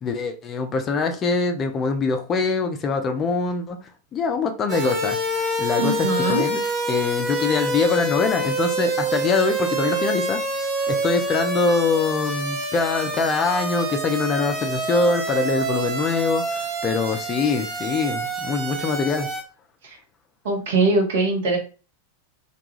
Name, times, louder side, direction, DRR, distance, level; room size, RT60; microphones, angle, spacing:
voice 1, 0.0-3.8 4.1-5.2 5.6-6.6 6.9-10.4 10.9-19.3, left 4 dB, 25° left, 6 dB, 0.4 m, -23 dB
sound 1, 4.7-19.4, right 1 dB, 25° right, 0.7 m, -27 dB
voice 2, 5.8-6.4 19.8-20.0 20.4-21.6, right 3 dB, 60° right, 2 dB, 0.8 m, -22 dB
2.3 x 2.2 x 2.9 m, 0.35 s
figure-of-eight pair, 90°, 0 cm